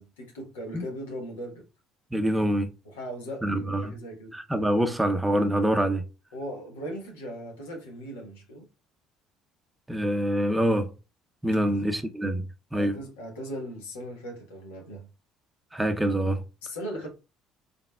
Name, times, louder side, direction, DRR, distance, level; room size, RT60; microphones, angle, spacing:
voice 1, 0.0-1.6 2.8-4.3 6.3-8.7 11.5-11.8 12.7-15.1 16.6-17.1, equal, 75° left, 1.1 m, -38 dB
voice 2, 2.1-2.7 3.4-3.9 4.3-6.0 9.9-10.9 11.4-12.4 12.7-13.0 15.7-16.4, right 1 dB, 10° right, 0.6 m, -25 dB
4.0 x 3.5 x 2.2 m
figure-of-eight pair, 55°, 0 cm